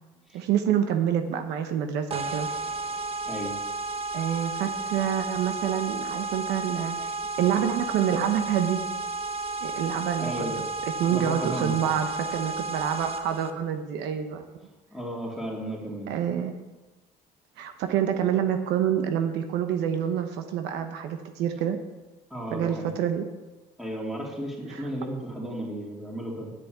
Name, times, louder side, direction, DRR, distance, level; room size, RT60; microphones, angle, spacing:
voice 1, 0.3-2.5 4.1-8.8 9.6-10.5 11.0-14.4 16.1-16.6 17.6-21.8 22.5-23.3 24.7-24.8, right 9 dB, 90° right, 7 dB, 1.0 m, -27 dB
sound 1, 2.1-13.5, right 3 dB, 35° right, 0.8 m, -32 dB
voice 2, 3.3-3.6 10.2-10.7 11.1-11.9 14.9-16.1 22.3-23.0 23.8-26.5, right 1 dB, ahead, -3 dB, 3.1 m, -34 dB
9.9 x 6.8 x 8.0 m, 1.2 s
cardioid pair, 110°, 17 cm